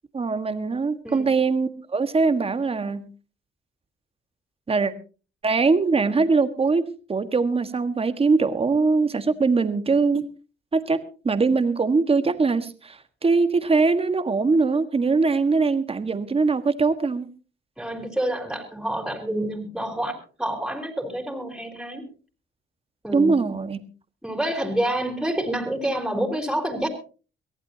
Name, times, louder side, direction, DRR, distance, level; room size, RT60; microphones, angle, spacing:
voice 1, 0.1-3.0 4.7-4.9 5.4-10.2 10.7-17.3 23.1-23.8, right 4 dB, 30° right, 10 dB, 1.6 m, -22 dB
voice 2, 17.8-22.1 23.0-23.4 24.2-26.9, right 1 dB, 5° right, 3 dB, 4.1 m, -28 dB
23.0 x 15.0 x 2.9 m, 0.35 s
cardioid pair, 90°, 20 cm